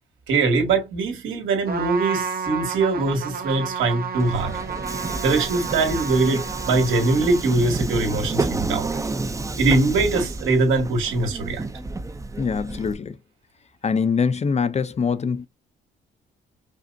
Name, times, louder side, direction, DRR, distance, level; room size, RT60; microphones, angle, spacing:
voice 1, 0.3-4.5 5.2-9.0 9.6-11.6, right 3 dB, 85° right, 2.1 m, -22 dB
Trumpet, 1.7-7.8, right 6 dB, 50° right, 1.0 m, -31 dB
Subway metro underground, 4.2-12.9, right 3 dB, 15° right, 0.5 m, -30 dB
voice 2, 12.4-13.2 13.8-15.5, left 5 dB, 35° left, 0.6 m, -23 dB
5.2 x 2.1 x 2.6 m
cardioid pair, 90°, 20 cm